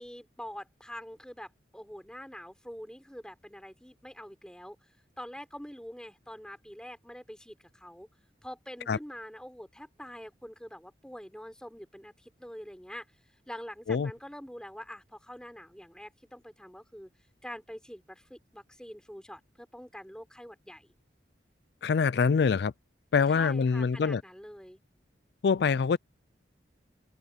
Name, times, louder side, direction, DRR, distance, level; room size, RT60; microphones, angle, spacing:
voice 1, 0.0-4.8 5.2-8.1 8.4-13.1 13.5-17.1 17.4-20.9 23.3-24.8, equal, 5° left, 4.6 m, -45 dB
voice 2, 21.8-22.7 23.1-24.2 25.4-26.0, left 5 dB, 65° left, 0.4 m, -25 dB
open air
head